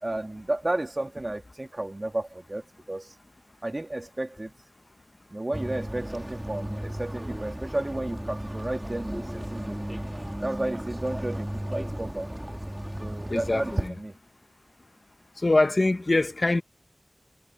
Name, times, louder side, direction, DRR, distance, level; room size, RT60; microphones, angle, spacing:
voice 1, 0.0-3.1 3.6-4.5 5.3-9.8 10.4-12.3 13.0-14.1, right 1 dB, 40° right, 2.1 m, -32 dB
sound 1, 5.5-13.9, equal, 15° right, 2.0 m, -35 dB
voice 2, 13.3-13.9 15.4-16.6, left 2 dB, 60° left, 0.7 m, -23 dB
wide cardioid pair, 40°, 0 cm